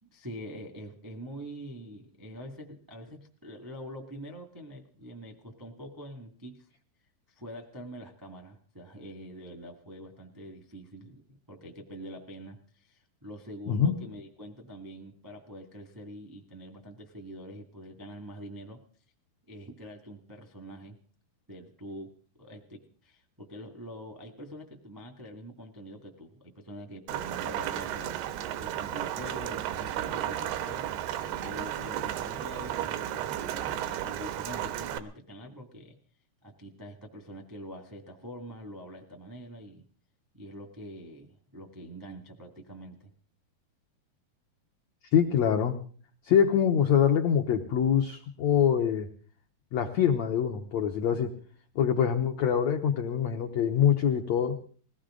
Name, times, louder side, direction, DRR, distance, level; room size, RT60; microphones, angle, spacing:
voice 1, 0.0-6.7 7.3-18.8 19.5-21.0 21.5-22.1 22.4-31.2 31.4-36.0 36.4-39.8 40.3-43.1, equal, 30° right, 3 dB, 0.3 m, -45 dB
voice 2, 13.7-14.0 45.1-45.8 46.2-49.1 49.7-51.3 51.7-54.6, left 8 dB, 90° left, 4 dB, 1.5 m, -24 dB
Rain, 27.1-35.0, right 11 dB, 85° right, 2.9 m, -33 dB
21.0 x 17.5 x 3.8 m, 0.43 s
omnidirectional pair, 4.6 m